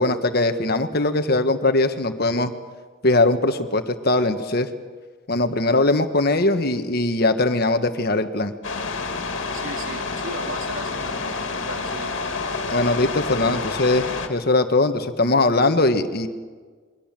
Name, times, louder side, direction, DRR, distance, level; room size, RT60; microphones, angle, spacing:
voice 1, 0.0-2.5 3.0-4.7 5.3-8.5 12.7-16.3, left 2 dB, 50° left, 8 dB, 1.4 m, -20 dB
sound 1, 8.6-14.3, left 4 dB, 65° left, 2.3 m, -28 dB
voice 2, 9.5-11.2 11.5-12.2, right 2 dB, 75° right, 3 dB, 3.2 m, -36 dB
28.0 x 22.5 x 7.5 m, 1.5 s
head